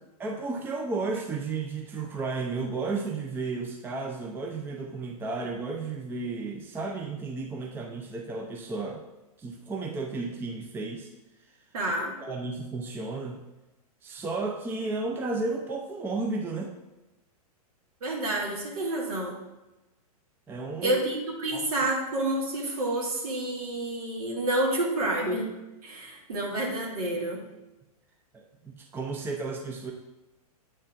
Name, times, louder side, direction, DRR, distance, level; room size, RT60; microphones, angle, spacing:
voice 1, 0.2-9.0 9.4-11.1 12.2-13.4 14.0-16.7 20.5-21.0 21.5-21.6 28.3-29.9, right 3 dB, 10° right, 1 dB, 0.5 m, -33 dB
voice 2, 11.7-12.1 18.0-19.4 20.8-25.5 25.8-27.4, right 1 dB, 70° right, -1 dB, 1.9 m, -29 dB
8.6 x 4.3 x 2.5 m, 1.0 s
hypercardioid pair, 120°, 20 cm